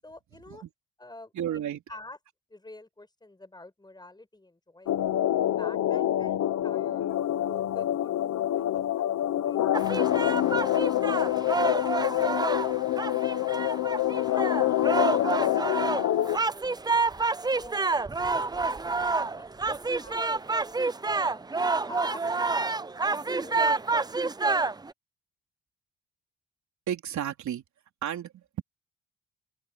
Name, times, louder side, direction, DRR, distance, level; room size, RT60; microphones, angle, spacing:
voice 1, 0.0-0.6 1.0-1.3 1.9-2.2 2.5-5.0 5.6-6.4 6.6-10.5 14.8-17.9 18.3-19.1 19.4-20.3 20.6-21.4 21.8-24.8, left 2 dB, 15° left, 7.4 m, -50 dB
voice 2, 1.4-1.8 26.9-27.6 28.0-28.6, right 10 dB, 70° right, 3.9 m, -32 dB
sound 1, 4.9-16.4, left 12 dB, 65° left, 1.1 m, -26 dB
sound 2, 9.7-24.9, right 3 dB, 15° right, 0.5 m, -28 dB
open air
cardioid pair, 90°, 30 cm